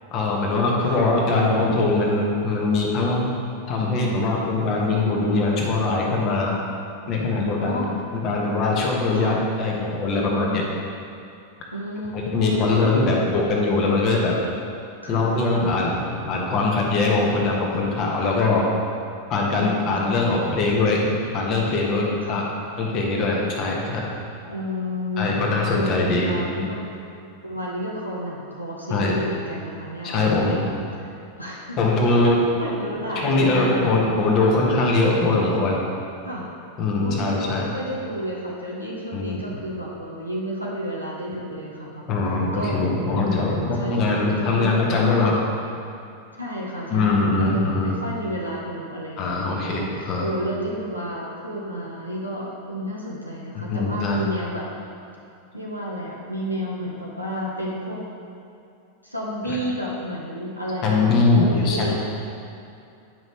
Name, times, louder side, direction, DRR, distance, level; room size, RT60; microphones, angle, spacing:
voice 1, 0.1-3.3 3.7-6.5 7.1-7.8 8.1-10.6 12.1-14.3 15.1-18.6 19.3-22.0 22.3-22.4 22.8-24.1 25.2-26.7 28.9-29.2 30.0-30.6 31.8-32.4 33.2-35.8 36.8-37.7 39.1-39.4 42.1-45.4 46.9-47.9 49.2-50.3 53.5-54.2 59.5-59.6 60.8-62.0, left 3 dB, 35° left, -2 dB, 1.2 m, -22 dB
voice 2, 7.6-8.0 9.1-9.4 11.7-12.8 15.0-15.3 19.5-20.2 22.2-22.4 24.5-26.8 27.4-31.8 32.6-34.1 36.2-36.5 37.0-42.0 42.5-45.2 46.4-54.6 55.5-58.0 59.0-62.0, equal, 90° left, -5 dB, 1.0 m, -31 dB
9.2 x 5.3 x 3.2 m, 2.6 s
figure-of-eight pair, 90°, 0 cm